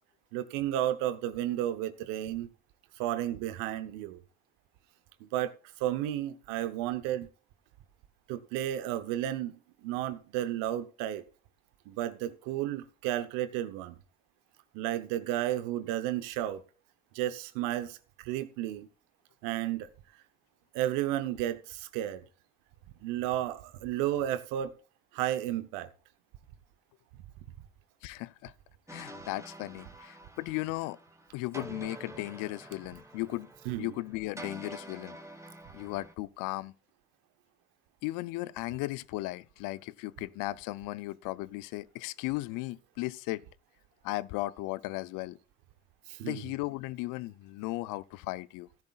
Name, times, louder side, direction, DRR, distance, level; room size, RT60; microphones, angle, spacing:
voice 1, 0.3-2.5 3.0-4.2 5.2-5.5 5.8-7.3 8.3-11.2 11.9-14.0 14.7-16.6 17.1-18.9 19.4-19.9 20.7-22.2 23.0-24.7 25.1-25.9 33.7-33.9 46.1-46.4, right 12 dB, 80° right, 0.9 m, -32 dB
voice 2, 28.0-28.5 28.9-31.0 31.3-33.5 33.8-35.2 35.7-36.7 38.0-43.4 44.0-45.4 46.2-48.7, left 19 dB, 75° left, 0.5 m, -36 dB
sound 1, 28.9-36.1, right 1 dB, 10° right, 1.8 m, -47 dB
16.0 x 10.5 x 2.4 m
hypercardioid pair, 50°, 32 cm